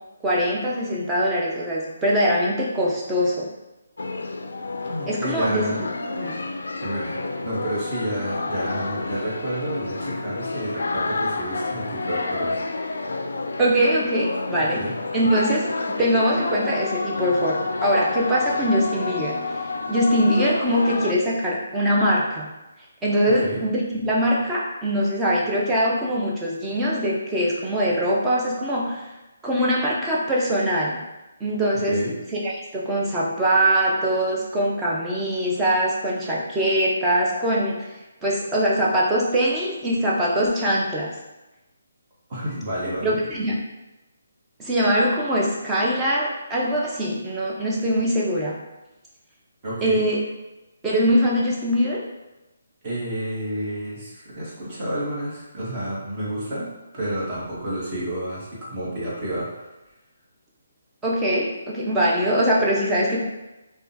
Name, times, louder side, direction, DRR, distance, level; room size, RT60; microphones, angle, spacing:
voice 1, 0.2-3.5 5.1-5.9 6.2-6.5 13.6-14.9 15.1-15.7 16.0-19.4 19.9-22.5 23.0-29.1 29.4-31.0 31.4-32.0 32.4-37.9 38.2-41.1 43.0-43.6 44.6-48.6 49.8-50.2 50.8-52.0 61.0-63.2, equal, 10° right, -5 dB, 0.6 m, -22 dB
sound 1, 4.0-21.1, left 3 dB, 80° left, 0.3 m, -29 dB
voice 2, 4.9-5.8 6.8-12.6 14.6-15.0 23.4-23.6 31.9-32.2 42.3-43.2 49.6-50.0 52.8-59.6, right 1 dB, 30° right, -8 dB, 1.4 m, -30 dB
3.4 x 2.3 x 2.7 m, 1.0 s
hypercardioid pair, 155°, 0 cm